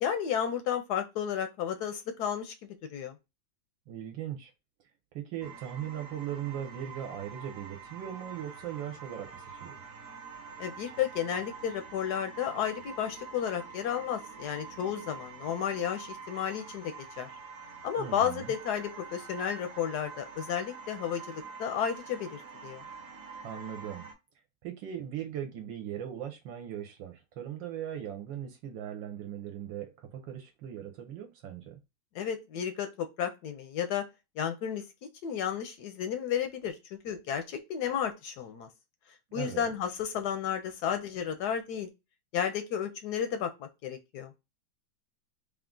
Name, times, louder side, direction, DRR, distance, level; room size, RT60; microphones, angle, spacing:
voice 1, 0.0-2.5 2.9-3.1 10.6-17.3 17.8-22.8 32.1-34.0 34.4-34.8 35.2-38.7 39.3-41.9 42.3-44.3, left 8 dB, 70° left, 1.0 m, -32 dB
voice 2, 3.9-4.5 5.1-9.7 18.0-18.5 23.4-24.1 24.6-31.8 39.3-39.7, right 10 dB, 75° right, 1.3 m, -39 dB
sound 1, 5.4-24.1, right 5 dB, 50° right, 1.1 m, -46 dB
3.7 x 2.4 x 3.6 m
omnidirectional pair, 2.2 m